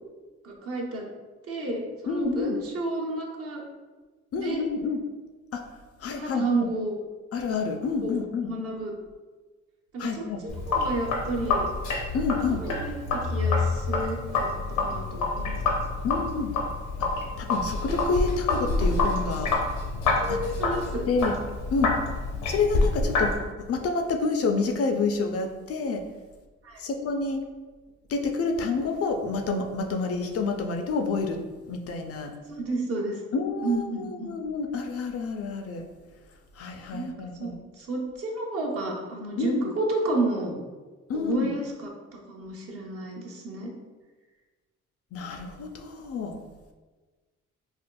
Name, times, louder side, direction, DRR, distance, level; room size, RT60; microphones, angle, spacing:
voice 1, 0.4-1.1 1.4-3.6 4.3-4.6 6.1-7.0 8.0-8.2 8.4-8.9 9.9-10.2 10.7-11.7 12.6-14.5 14.8-15.8 20.2-21.0 26.6-26.8 32.5-33.2 33.6-34.4 36.9-37.1 37.4-37.5 37.8-40.6 41.1-43.7, right 2 dB, 50° right, -2 dB, 0.8 m, -31 dB
voice 2, 2.1-2.6 4.3-5.0 5.5-5.6 6.0-6.7 7.3-8.5 10.0-10.4 12.1-12.6 16.0-16.5 17.4-19.5 20.3-20.4 21.1-21.4 21.7-22.0 22.5-26.0 26.8-27.4 28.1-31.4 31.7-32.3 33.3-35.8 36.6-37.6 39.4-39.7 41.1-41.5 45.1-46.4, left 4 dB, 50° left, 4 dB, 0.4 m, -28 dB
Sink (filling or washing), 10.5-23.4, left 3 dB, 85° left, 0.7 m, -27 dB
4.2 x 2.4 x 2.2 m, 1.3 s
cardioid pair, 90°, 30 cm